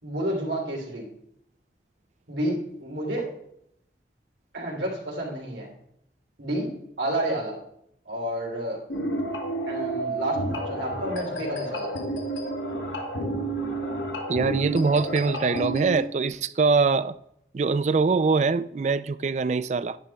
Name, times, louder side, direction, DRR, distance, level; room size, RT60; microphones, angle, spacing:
voice 1, 0.0-1.1 2.3-3.3 4.5-5.7 6.4-6.7 7.0-7.6 8.0-8.8 9.7-11.9, right 1 dB, 85° right, 3.1 m, -30 dB
sound 1, 8.9-16.0, right 1 dB, 85° left, 1.5 m, -30 dB
voice 2, 14.3-17.1 17.5-20.0, right 4 dB, 40° right, 0.3 m, -23 dB
10.5 x 10.5 x 2.3 m
head